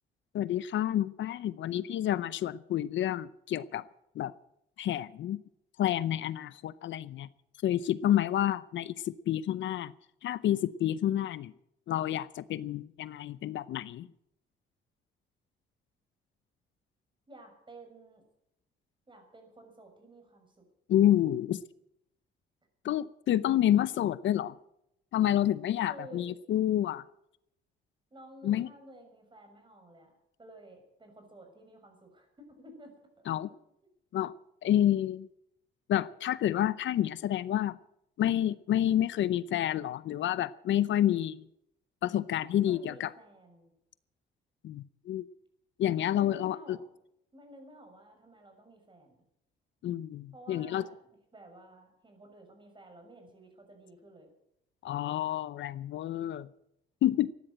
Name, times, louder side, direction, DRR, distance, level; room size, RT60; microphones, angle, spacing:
voice 1, 0.3-3.8 4.1-4.3 4.8-5.4 5.8-7.3 7.6-9.9 10.2-11.5 11.9-14.1 20.9-21.6 22.8-24.6 25.1-27.0 28.4-28.7 33.3-33.5 34.1-34.3 34.6-35.3 35.9-37.8 38.2-41.4 42.0-43.1 44.6-45.2 45.8-46.8 49.8-50.8 54.8-56.5 57.0-57.3, left 12 dB, 70° left, 17 dB, 0.6 m, -29 dB
voice 2, 17.3-18.2 19.1-20.6 25.9-26.3 28.1-30.1 30.4-33.3 42.4-43.7 46.1-46.9 47.3-49.2 50.3-54.3, right 1 dB, 25° right, 4 dB, 6.4 m, -52 dB
14.5 x 11.0 x 8.9 m, 0.78 s
cardioid pair, 90°, 20 cm